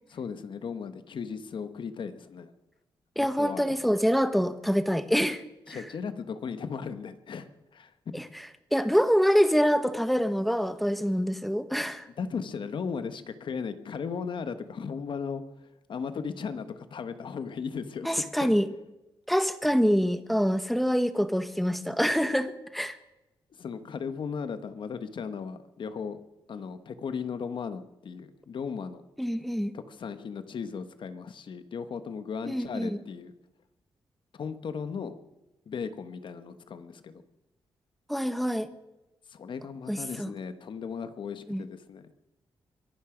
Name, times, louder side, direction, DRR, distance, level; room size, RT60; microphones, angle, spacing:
voice 1, 0.1-2.5 3.2-3.6 5.7-8.2 12.2-18.5 23.5-26.2 26.5-29.0 29.7-33.3 34.3-35.2 35.7-37.2 39.3-42.1, left 6 dB, 60° left, 10 dB, 1.3 m, -36 dB
voice 2, 3.2-5.8 8.1-12.1 18.0-18.7 19.3-23.0 29.2-29.7 32.5-33.0 38.1-38.7 39.9-40.3 41.5-41.6, equal, ahead, 11 dB, 1.1 m, -26 dB
23.5 x 12.0 x 5.1 m, 0.96 s
cardioid pair, 105°, 9 cm